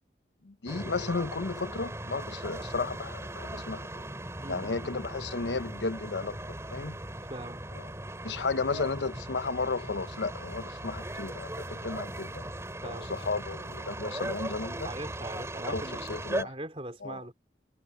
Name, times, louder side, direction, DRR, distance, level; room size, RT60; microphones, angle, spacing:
voice 1, 0.4-4.0 4.5-6.4 6.7-7.0 8.2-12.4 12.8-14.9 15.7-16.5 17.0-17.2, left 4 dB, 75° left, 0.8 m, -34 dB
sound 1, 0.7-16.4, right 1 dB, 15° right, 3.5 m, -38 dB
voice 2, 4.4-4.9 7.3-7.6 12.8-13.1 14.8-16.1 16.4-17.3, right 1 dB, 30° right, 3.1 m, -41 dB
head